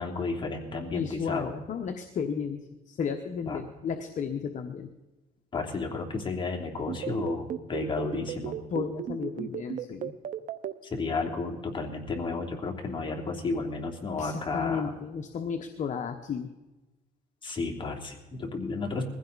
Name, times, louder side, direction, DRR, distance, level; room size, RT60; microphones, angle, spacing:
voice 1, 0.0-1.5 3.5-3.6 5.5-8.6 10.8-14.8 17.4-19.0, left 3 dB, 30° left, 2 dB, 3.1 m, -32 dB
voice 2, 0.9-4.9 8.7-10.1 14.2-16.5, left 6 dB, 45° left, 6 dB, 1.1 m, -33 dB
sound 1, 6.9-10.7, right 9 dB, 50° right, 0.9 m, -34 dB
21.5 x 15.5 x 4.1 m, 1.1 s
cardioid pair, 110°, 17 cm